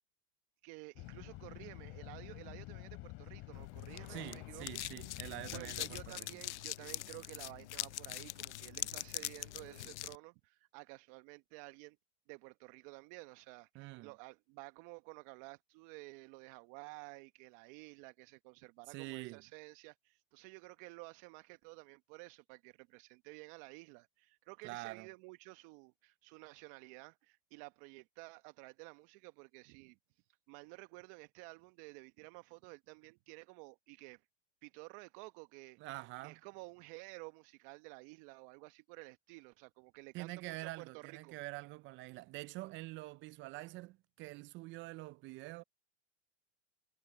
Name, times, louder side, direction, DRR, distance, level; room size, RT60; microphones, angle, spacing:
voice 1, 0.6-4.7 5.1-12.0 12.3-34.3 34.6-41.4, right 26 dB, 50° right, 1.2 m, -53 dB
sound 1, 1.0-6.1, left 23 dB, 50° left, 3.0 m, -49 dB
sound 2, 3.5-10.2, left 16 dB, 80° left, 0.6 m, -43 dB
voice 2, 4.1-6.3 13.7-14.1 18.9-19.4 24.6-25.1 35.8-36.4 40.1-45.6, right 20 dB, 35° right, 0.5 m, -46 dB
hypercardioid pair, 110°, 35 cm